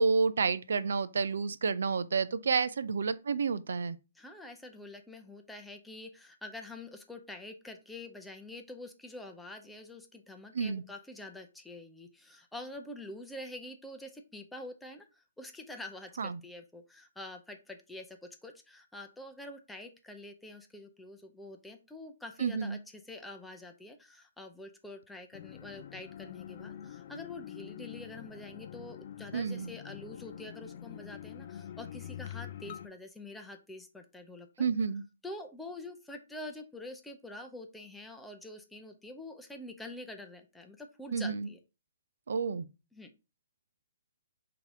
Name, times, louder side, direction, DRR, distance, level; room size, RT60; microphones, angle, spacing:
voice 1, 0.0-4.0 10.5-10.8 16.2-16.4 22.4-22.8 29.3-29.7 34.6-35.0 41.1-41.5 42.3-42.7, right 5 dB, 70° right, 0.4 m, -30 dB
voice 2, 4.2-34.7 35.2-41.6 42.9-43.1, left 2 dB, 5° left, 0.6 m, -46 dB
sound 1, 25.3-32.9, left 10 dB, 50° left, 0.4 m, -45 dB
3.9 x 2.8 x 4.6 m
hypercardioid pair, 135°, 0 cm